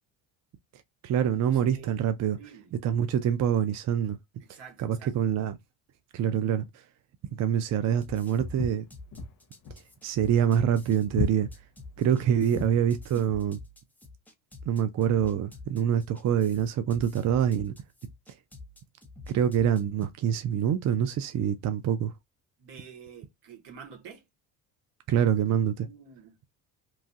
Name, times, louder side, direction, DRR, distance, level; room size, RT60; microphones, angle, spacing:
voice 1, 1.0-2.4 2.8-4.2 4.8-5.6 6.1-6.7 7.4-8.9 10.0-11.5 12.0-13.6 14.7-17.7 19.3-22.1 25.1-25.9, right 9 dB, 40° right, 0.4 m, -25 dB
voice 2, 1.7-2.0 2.3-2.7 4.4-5.3 12.3-12.4 22.6-24.2 25.8-26.3, right 7 dB, 70° right, 1.3 m, -48 dB
sound 1, 8.0-20.3, left 2 dB, 5° left, 0.7 m, -47 dB
Walk footsteps, 8.4-12.9, left 4 dB, 50° left, 0.6 m, -35 dB
3.0 x 2.3 x 2.7 m
supercardioid pair, 85°, 43 cm